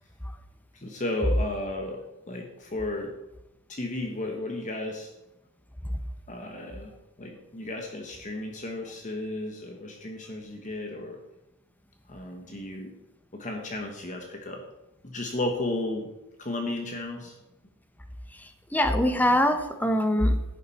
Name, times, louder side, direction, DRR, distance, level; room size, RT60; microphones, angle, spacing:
voice 1, 0.7-3.1 3.7-5.1 6.3-6.9 7.2-11.2 12.1-12.9 13.3-14.6 15.0-16.1 16.4-17.4, left 2 dB, 35° left, 3 dB, 1.2 m, -34 dB
voice 2, 18.3-20.4, equal, 10° left, 8 dB, 0.9 m, -23 dB
11.5 x 9.0 x 4.2 m, 0.93 s
head